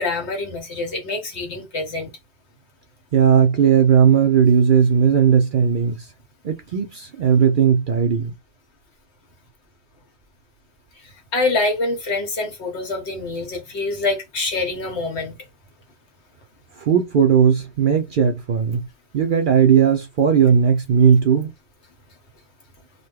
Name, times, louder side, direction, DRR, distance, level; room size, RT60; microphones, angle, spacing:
voice 1, 0.0-2.1 11.3-15.4, left 3 dB, 85° left, 1.4 m, -25 dB
voice 2, 3.1-5.9 6.4-8.3 16.8-18.9 19.1-21.5, right 7 dB, 55° right, 0.7 m, -17 dB
2.7 x 2.2 x 3.4 m
omnidirectional pair, 1.1 m